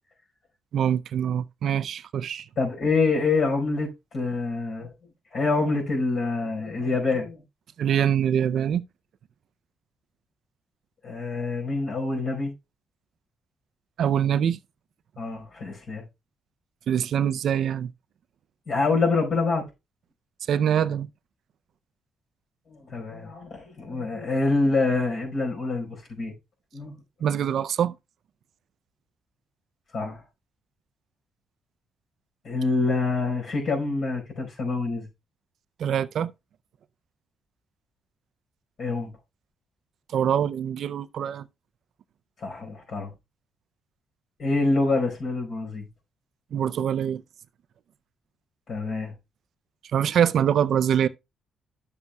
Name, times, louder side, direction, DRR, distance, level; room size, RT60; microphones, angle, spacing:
voice 1, 0.7-2.4 7.8-8.8 14.0-14.6 16.9-17.9 20.5-21.1 27.2-27.9 35.8-36.3 40.1-41.5 46.5-47.2 49.9-51.1, right 9 dB, 65° right, 0.4 m, -24 dB
voice 2, 2.6-4.9 5.3-7.4 11.0-12.5 15.2-16.0 18.7-19.6 22.7-26.3 26.7-27.0 29.9-30.2 32.4-35.1 38.8-39.1 42.4-43.1 44.4-45.9 48.7-49.1, left 3 dB, 55° left, 4.6 m, -26 dB
10.5 x 7.3 x 2.2 m
cardioid pair, 90°, 0 cm